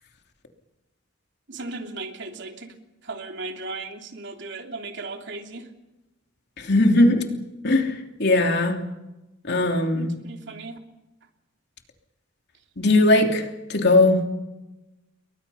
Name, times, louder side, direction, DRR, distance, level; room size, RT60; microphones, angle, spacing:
voice 1, 1.5-2.7 3.0-5.7 10.0-10.8, right 3 dB, 65° right, 3 dB, 3.3 m, -36 dB
voice 2, 6.6-7.3 7.6-8.8 9.4-10.1 12.8-14.3, left 2 dB, 60° left, 3 dB, 3.1 m, -19 dB
29.5 x 22.5 x 5.7 m, 1.0 s
head